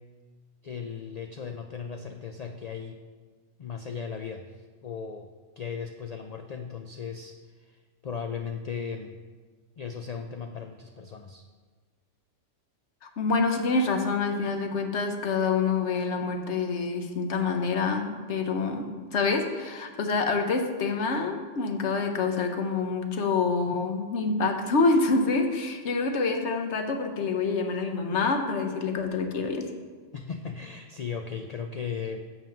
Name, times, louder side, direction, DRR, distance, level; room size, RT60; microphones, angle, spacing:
voice 1, 0.6-3.0 3.6-4.5 4.8-5.3 5.6-7.8 8.0-9.2 9.8-11.5 30.1-32.2, left 6 dB, 90° left, 6 dB, 0.3 m, -36 dB
voice 2, 13.0-29.7, left 4 dB, 70° left, 5 dB, 1.1 m, -27 dB
7.2 x 5.7 x 5.8 m, 1.5 s
omnidirectional pair, 1.2 m